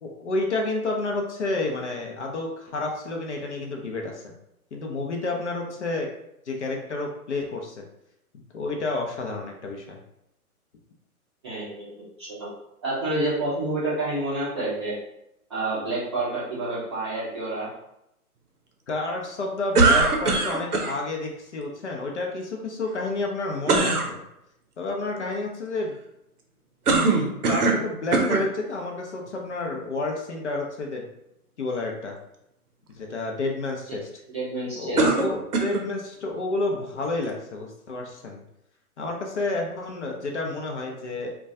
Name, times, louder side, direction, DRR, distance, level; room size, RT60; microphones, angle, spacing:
voice 1, 0.0-4.2 4.7-6.1 6.5-7.8 8.5-10.0 18.9-24.2 24.8-26.0 27.0-31.1 31.6-32.2 32.9-34.1 34.8-38.4 39.0-41.3, left 2 dB, 50° left, 1 dB, 0.5 m, -30 dB
voice 2, 11.4-11.9 12.2-12.5 12.8-14.9 15.5-17.7 34.3-35.0, right 2 dB, 20° right, -10 dB, 0.6 m, -28 dB
sound 1, 19.7-20.9 23.7-24.1 26.9-27.8 28.1-28.5 29.3-29.4 35.0-35.9, right 3 dB, 80° right, 0.7 m, -21 dB
2.2 x 2.2 x 2.6 m, 0.82 s
figure-of-eight pair, 130°, 45 cm